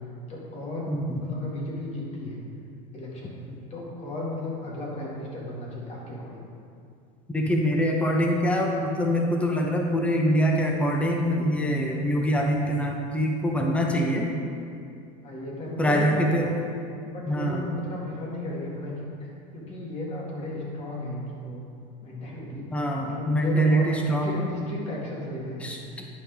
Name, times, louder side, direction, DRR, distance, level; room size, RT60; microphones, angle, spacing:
voice 1, 0.3-2.4 2.9-3.3 3.7-6.4 15.2-16.6 17.0-19.3 19.5-21.6 22.0-25.7, left 1 dB, 35° left, -4 dB, 1.9 m, -35 dB
voice 2, 0.9-1.2 7.3-14.3 15.8-16.5 17.3-17.7 22.7-24.5 25.6-25.8, equal, 5° left, 1 dB, 0.7 m, -24 dB
10.0 x 5.4 x 3.5 m, 2.4 s
supercardioid pair, 135°, 19 cm